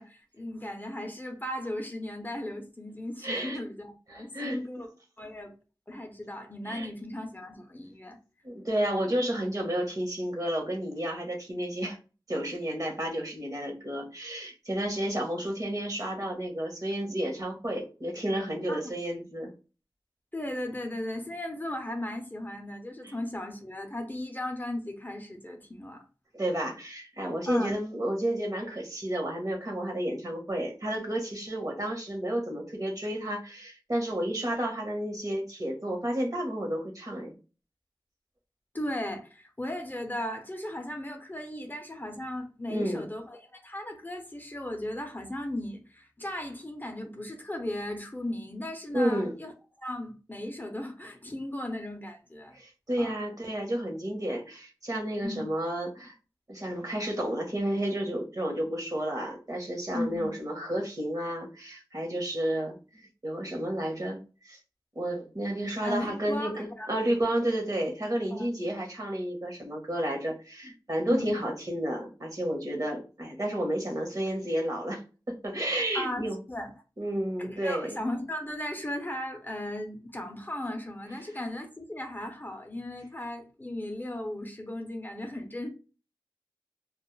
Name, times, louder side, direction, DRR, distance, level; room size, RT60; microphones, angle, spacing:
voice 1, 0.0-4.9 5.2-5.5 5.9-8.2 18.7-18.8 20.3-26.0 27.5-27.8 38.7-49.5 49.8-52.5 53.0-53.2 55.2-55.4 59.9-60.3 65.8-66.9 68.3-68.5 71.1-71.4 75.9-76.7 77.4-85.7, left 1 dB, 20° left, 0.5 m, -36 dB
voice 2, 3.2-3.6 4.1-4.9 6.7-6.9 8.4-12.0 12.3-19.5 23.0-23.1 26.3-37.3 42.7-43.1 48.9-49.3 52.5-56.1 56.5-62.8 63.2-64.2 64.4-64.6 64.9-76.4 77.0-78.0, right 1 dB, 45° right, 0.9 m, -31 dB
2.2 x 2.0 x 3.0 m
wide cardioid pair, 40°, 9 cm